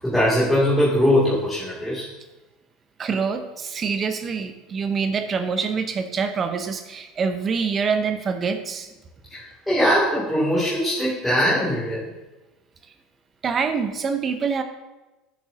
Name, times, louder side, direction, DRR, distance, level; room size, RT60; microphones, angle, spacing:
voice 1, 0.0-2.1 9.3-12.1, equal, 5° left, -10 dB, 2.7 m, -21 dB
voice 2, 3.0-8.9 13.4-14.6, right 5 dB, 30° right, 7 dB, 0.9 m, -25 dB
13.0 x 7.5 x 2.8 m, 1.1 s
supercardioid pair, 130°, 0 cm